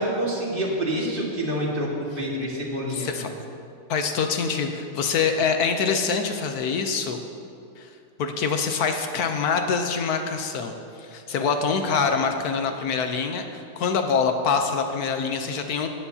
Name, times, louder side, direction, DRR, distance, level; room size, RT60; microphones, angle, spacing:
voice 1, 0.0-3.1 11.9-12.0, equal, 25° right, -3 dB, 1.8 m, -27 dB
voice 2, 2.9-3.3 3.9-7.2 7.8-7.9 8.2-15.9, left 5 dB, 70° left, 5 dB, 0.9 m, -25 dB
19.0 x 9.3 x 2.8 m, 2.5 s
omnidirectional pair, 2.4 m